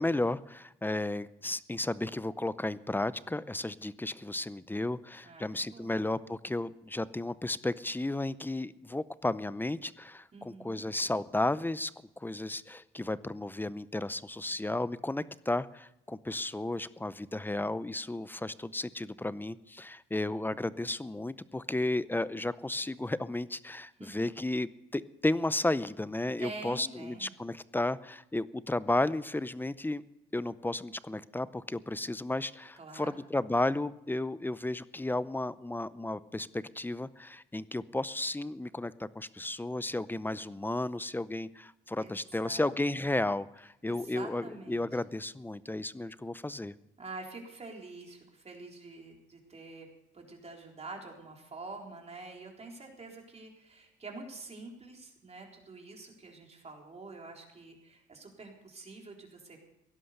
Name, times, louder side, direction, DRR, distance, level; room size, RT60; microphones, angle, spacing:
voice 1, 0.0-11.9 12.2-30.0 30.3-46.7, left 2 dB, 10° left, 17 dB, 0.6 m, -33 dB
voice 2, 5.2-6.0 10.3-10.8 24.0-24.3 26.4-27.3 32.7-33.1 42.0-42.7 43.9-45.0 47.0-49.9 50.1-59.6, right 3 dB, 30° right, 1 dB, 3.9 m, -46 dB
17.0 x 11.5 x 6.6 m, 0.83 s
cardioid pair, 90°, 20 cm